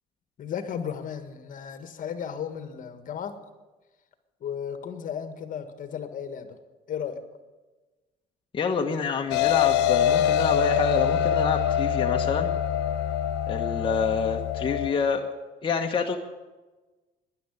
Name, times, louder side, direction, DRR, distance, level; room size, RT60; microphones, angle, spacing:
voice 1, 0.4-3.4 4.4-6.6 6.9-7.2, left 8 dB, 50° left, 9 dB, 1.7 m, -34 dB
voice 2, 8.5-12.5 13.5-15.2 15.6-16.2, left 5 dB, 30° left, 2 dB, 1.3 m, -27 dB
sound 1, 9.3-14.9, left 9 dB, 85° left, 1.0 m, -24 dB
12.5 x 11.0 x 10.0 m, 1.2 s
cardioid pair, 110°, 17 cm